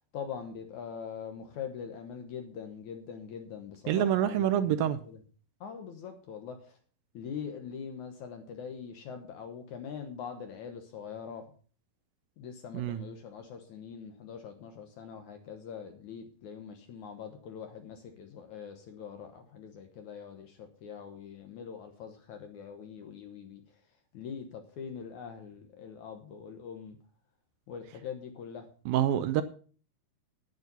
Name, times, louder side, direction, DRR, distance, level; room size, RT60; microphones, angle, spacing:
voice 1, 0.1-5.2 5.6-6.8 7.1-11.5 12.4-23.6 24.1-27.0 27.7-28.7, left 7 dB, 65° left, 6 dB, 2.0 m, -43 dB
voice 2, 3.9-5.0 12.7-13.0 28.9-29.4, right 11 dB, 75° right, 11 dB, 2.3 m, -26 dB
10.5 x 9.3 x 5.4 m, 0.41 s
omnidirectional pair, 4.5 m